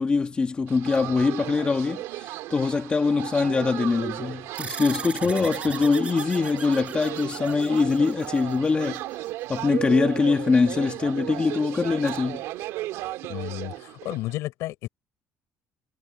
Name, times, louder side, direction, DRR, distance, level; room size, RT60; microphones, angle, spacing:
voice 1, 0.0-9.0 9.5-12.4, left 4 dB, 20° left, 1.8 m, -23 dB
sound 1, 0.7-14.3, right 16 dB, 90° right, 2.2 m, -35 dB
sound 2, 4.6-9.4, right 5 dB, 25° right, 5.7 m, -39 dB
voice 2, 13.3-14.9, left 17 dB, 85° left, 6.3 m, -32 dB
cardioid pair, 150°, 5 cm